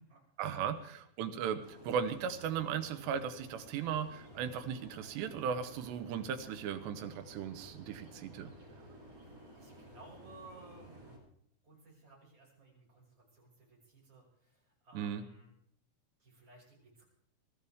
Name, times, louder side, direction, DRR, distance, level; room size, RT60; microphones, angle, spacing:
voice 1, 0.4-8.5 14.9-15.2, right 7 dB, 80° right, 9 dB, 3.1 m, -37 dB
sound 1, 1.6-11.2, right 1 dB, 55° right, 7.4 m, -54 dB
voice 2, 9.2-10.9 11.6-15.5 16.2-17.0, right 2 dB, 25° right, -4 dB, 6.4 m, -58 dB
23.0 x 14.0 x 3.5 m, 0.68 s
omnidirectional pair, 5.0 m